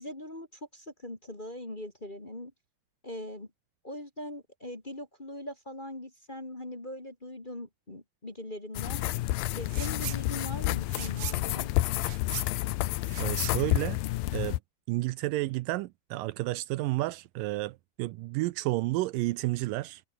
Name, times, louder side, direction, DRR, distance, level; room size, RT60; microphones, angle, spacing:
voice 1, 0.0-2.5 3.0-3.5 3.8-9.0 9.5-11.7, left 1 dB, 20° left, 1.6 m, -41 dB
sound 1, 8.8-14.6, left 17 dB, 75° left, 2.4 m, -30 dB
sound 2, 9.6-10.2 10.5-14.5, right 10 dB, 60° right, 1.6 m, -41 dB
voice 2, 13.2-14.0 14.3-14.6 14.9-20.0, right 19 dB, 85° right, 2.0 m, -31 dB
omnidirectional pair, 4.5 m